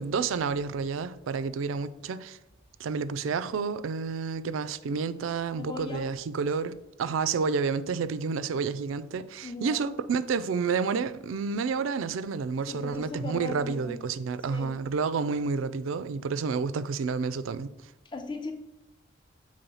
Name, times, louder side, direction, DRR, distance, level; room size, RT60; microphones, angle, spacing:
voice 1, 0.0-2.4 2.8-17.7, right 5 dB, 80° right, 0.4 m, -30 dB
voice 2, 5.6-6.1 9.4-9.9 12.7-14.0 14.5-14.7 18.1-18.5, left 3 dB, 25° left, 0.6 m, -38 dB
7.0 x 3.1 x 5.4 m
head